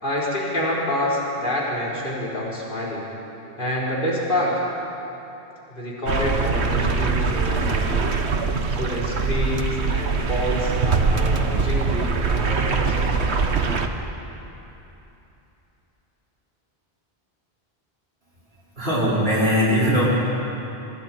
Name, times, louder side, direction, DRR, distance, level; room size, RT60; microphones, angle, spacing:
voice 1, 0.0-3.0 3.6-4.5 5.7-8.1 8.7-13.5, left 1 dB, 55° left, -6 dB, 4.3 m, -27 dB
sound 1, 6.1-13.9, right 4 dB, 85° right, 1.4 m, -22 dB
voice 2, 18.8-20.1, equal, 65° right, -9 dB, 5.4 m, -20 dB
25.5 x 24.5 x 4.4 m, 2.9 s
omnidirectional pair, 1.1 m